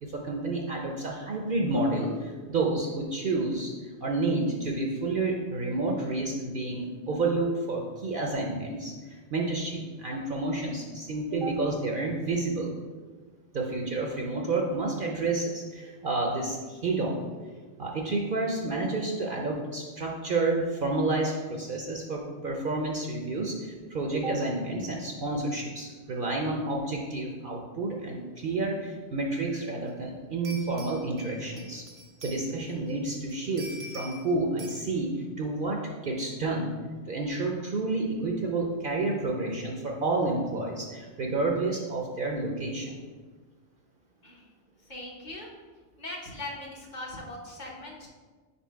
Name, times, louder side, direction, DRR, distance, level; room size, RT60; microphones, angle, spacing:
voice 1, 0.0-3.7 4.0-12.7 13.5-17.3 17.8-31.8 32.2-36.7 37.1-43.0, right 2 dB, 55° right, 0 dB, 0.7 m, -30 dB
sound 1, 29.9-30.0 30.4-32.9 33.3-34.3 34.6-34.8, equal, 75° right, 1.2 m, -45 dB
voice 2, 44.9-45.5 46.0-48.1, left 1 dB, 40° left, -2 dB, 1.0 m, -40 dB
4.8 x 4.3 x 4.6 m, 1.4 s
omnidirectional pair, 1.2 m